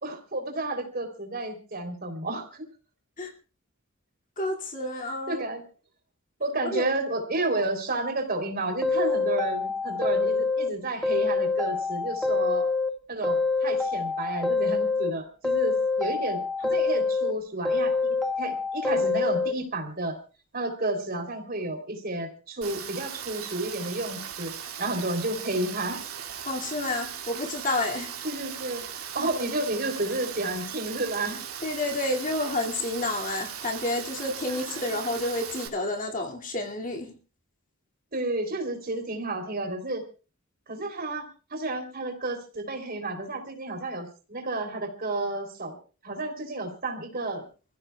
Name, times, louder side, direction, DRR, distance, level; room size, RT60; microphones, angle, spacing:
voice 1, 0.0-2.6 5.3-5.6 6.4-12.7 13.1-20.2 20.5-24.5 24.8-26.0 28.2-28.8 29.1-31.4 34.5-35.2 38.1-40.0 40.7-45.8 46.0-47.4, right 2 dB, 45° right, 3 dB, 3.5 m, -31 dB
voice 2, 4.4-5.5 6.7-6.9 26.5-28.1 29.2-29.5 31.6-37.1, left 2 dB, 35° left, 1 dB, 2.6 m, -30 dB
sound 1, 8.8-10.7 11.0-12.9 13.2-15.1 15.4-17.3 17.7-19.5, left 4 dB, ahead, 1.8 m, -26 dB
Rain, 22.6-35.7, right 8 dB, 85° right, 2.6 m, -38 dB
29.0 x 15.5 x 2.4 m, 0.34 s
head